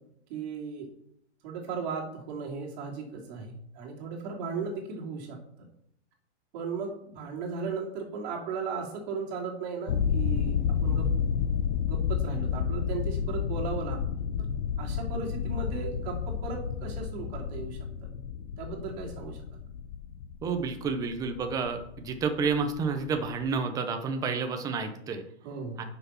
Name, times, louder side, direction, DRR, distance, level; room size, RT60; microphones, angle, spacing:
voice 1, 0.3-0.9 1.4-5.4 6.5-10.6 10.8-11.1 11.9-14.0 14.8-17.8 18.6-19.4 25.4-25.9, right 5 dB, 40° right, -1 dB, 2.9 m, -36 dB
sound 1, 9.9-23.5, left 7 dB, 70° left, 0.9 m, -31 dB
voice 2, 20.4-25.2 25.8-25.9, right 5 dB, 10° right, 6 dB, 0.7 m, -30 dB
8.8 x 6.1 x 5.7 m, 0.72 s
hypercardioid pair, 155°, 35 cm